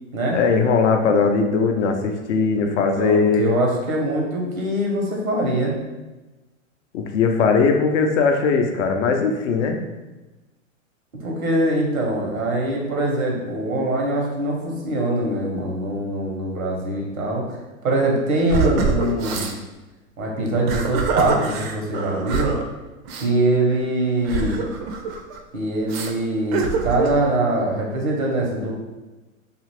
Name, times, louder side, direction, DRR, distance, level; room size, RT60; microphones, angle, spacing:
voice 1, 0.3-3.5 6.9-9.8, left 5 dB, 60° left, 4 dB, 0.6 m, -19 dB
voice 2, 2.9-5.8 11.2-17.6 17.8-19.5 20.2-22.6 23.2-24.6 25.5-28.7, right 1 dB, 90° right, -1 dB, 0.9 m, -23 dB
sound 1, 18.5-19.6 20.5-22.6 23.1-23.3 24.2-25.4 25.9-26.1 26.5-27.2, right 5 dB, 50° right, 0.5 m, -24 dB
2.5 x 2.4 x 3.2 m, 1.1 s
hypercardioid pair, 105°, 40 cm